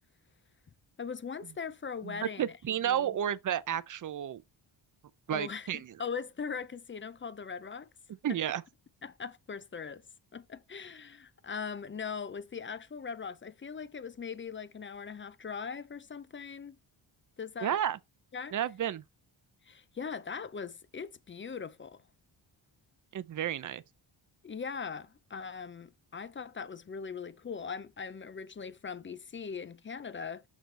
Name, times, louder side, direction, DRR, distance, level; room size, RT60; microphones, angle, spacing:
voice 1, 1.0-3.2 5.3-7.9 8.3-8.4 9.0-10.0 10.3-16.8 17.4-17.8 18.3-18.6 19.7-22.0 24.4-30.4, left 6 dB, 25° left, 0.4 m, -40 dB
voice 2, 2.0-4.4 5.3-5.9 8.2-8.6 17.6-18.0 18.5-19.0 23.1-23.8, right 10 dB, 40° right, 0.5 m, -32 dB
6.5 x 6.2 x 3.2 m
wide cardioid pair, 135°, 49 cm